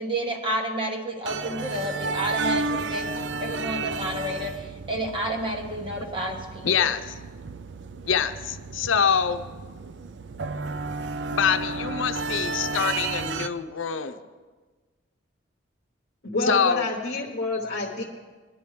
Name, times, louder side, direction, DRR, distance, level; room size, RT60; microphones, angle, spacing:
voice 1, 0.0-3.1 3.4-6.9, right 1 dB, 25° right, 3 dB, 1.3 m, -30 dB
sound 1, 1.3-13.5, right 3 dB, 60° right, 0.5 m, -32 dB
voice 2, 6.6-7.1 8.1-9.4 11.3-14.2 16.4-16.8, left 7 dB, 85° left, 9 dB, 0.7 m, -25 dB
voice 3, 16.2-18.0, left 2 dB, 55° left, -2 dB, 1.1 m, -28 dB
19.5 x 10.5 x 3.2 m, 1.3 s
head